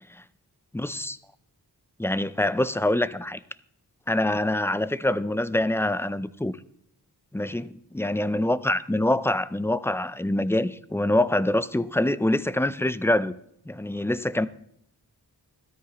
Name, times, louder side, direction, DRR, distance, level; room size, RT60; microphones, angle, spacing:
voice 1, 0.7-1.2 2.0-3.4 4.1-6.5 7.3-7.7 7.9-13.4 13.7-14.5, left 1 dB, 5° left, 0.5 m, -25 dB
13.0 x 13.0 x 3.0 m
cardioid pair, 55°, 40 cm